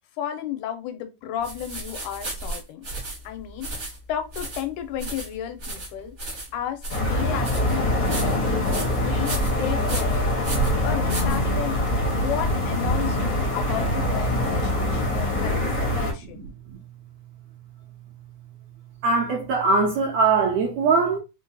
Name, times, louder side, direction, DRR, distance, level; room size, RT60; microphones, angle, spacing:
voice 1, 0.2-2.8 3.2-6.1 6.5-8.4 8.9-10.3 10.8-11.8 12.1-16.4, left 9 dB, 90° left, 2.2 m, -33 dB
sound 1, 1.4-11.9, right 2 dB, 55° right, 0.7 m, -34 dB
sound 2, 6.9-16.1, left 1 dB, 70° left, 0.8 m, -24 dB
voice 2, 16.4-16.8 19.0-21.2, right 4 dB, 80° right, 1.5 m, -22 dB
4.8 x 2.2 x 2.7 m
omnidirectional pair, 3.6 m